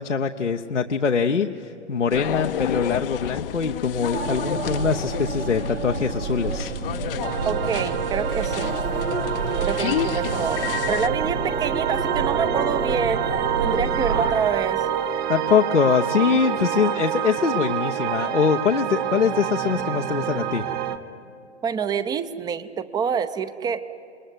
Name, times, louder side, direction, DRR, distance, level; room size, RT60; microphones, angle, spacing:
voice 1, 0.0-6.7 15.3-20.6, left 6 dB, 80° left, 3 dB, 1.0 m, -23 dB
sound 1, 2.1-11.1, left 11 dB, 50° left, 0.8 m, -31 dB
sound 2, 4.1-14.3, right 3 dB, 80° right, 2.0 m, -29 dB
sound 3, 7.2-21.0, right 10 dB, 30° right, 1.3 m, -27 dB
voice 2, 7.5-8.7 9.6-13.2 13.6-14.8 21.6-23.8, right 7 dB, 10° right, 13 dB, 0.7 m, -26 dB
27.5 x 21.0 x 9.6 m, 2.7 s
figure-of-eight pair, 110°, 35 cm